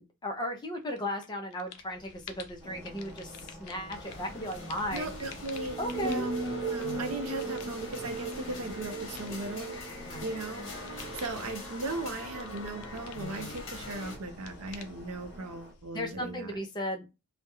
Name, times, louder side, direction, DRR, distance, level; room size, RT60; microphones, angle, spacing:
voice 1, 0.0-5.1 5.8-6.3 10.0-10.3 15.9-17.1, equal, 20° left, 3 dB, 0.4 m, -36 dB
sound 1, 0.9-1.3 1.5-16.5, left 4 dB, 80° left, 0.4 m, -50 dB
sound 2, 2.6-15.7, right 3 dB, 20° right, 0.9 m, -41 dB
sound 3, 3.9-14.2, left 2 dB, 60° left, 1.0 m, -43 dB
voice 2, 4.9-6.4 6.7-9.8 10.2-16.6, right 2 dB, 75° right, 6 dB, 0.5 m, -38 dB
2.3 x 2.1 x 2.9 m, 0.26 s
head